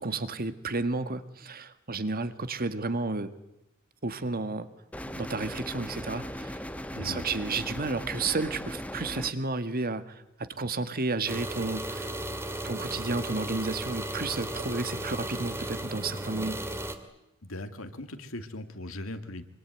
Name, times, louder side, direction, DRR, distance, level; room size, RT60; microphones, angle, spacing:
voice 1, 0.0-3.3 4.0-4.7 5.2-6.6 7.0-10.0 10.4-12.1 12.6-16.6, right 3 dB, 45° right, 11 dB, 1.8 m, -32 dB
sound 1, 4.9-9.3, equal, 5° left, 1.2 m, -38 dB
voice 2, 6.9-7.3 17.4-19.4, left 1 dB, 75° left, 8 dB, 2.6 m, -39 dB
sound 2, 11.3-16.9, right 1 dB, 10° right, 2.4 m, -35 dB
26.0 x 24.0 x 9.3 m, 0.88 s
head